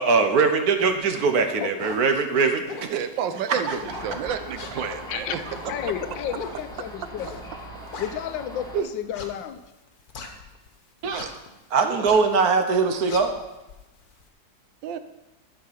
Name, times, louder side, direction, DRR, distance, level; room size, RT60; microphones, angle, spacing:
voice 1, 0.0-2.9 3.5-3.7 11.0-11.3 11.7-13.4, right 4 dB, 60° right, 7 dB, 1.2 m, -21 dB
sound 1, 0.8-1.1 1.5-2.1 2.7-3.0 3.6-4.1 4.5-8.5 9.0-10.7 11.0-11.5 11.8-12.3 12.7-14.2, left 5 dB, 60° left, 1.5 m, -40 dB
voice 2, 1.6-2.2 3.2-4.2 4.8-5.4 5.7-7.3 8.0-9.6, left 10 dB, 85° left, 11 dB, 1.4 m, -33 dB
voice 3, 2.9-5.4 8.7-8.9 11.8-12.1 14.8-15.0, right 10 dB, 85° right, 11 dB, 1.4 m, -30 dB
Thunder, 3.8-8.8, equal, ahead, 2.1 m, -39 dB
11.5 x 5.6 x 5.8 m, 1.0 s
omnidirectional pair, 2.0 m